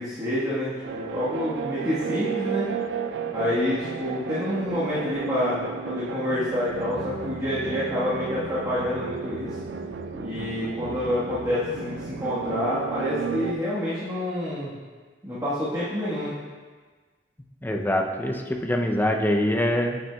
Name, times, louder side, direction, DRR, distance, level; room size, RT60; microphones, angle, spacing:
voice 1, 0.0-2.7 3.3-9.5 10.1-14.7 15.2-16.4, left 1 dB, 20° right, -11 dB, 1.4 m, -28 dB
sound 1, 0.8-13.5, right 5 dB, 85° right, 0.4 m, -33 dB
voice 2, 17.6-20.0, left 1 dB, 10° left, 2 dB, 0.6 m, -24 dB
9.2 x 7.1 x 2.3 m, 1.5 s
head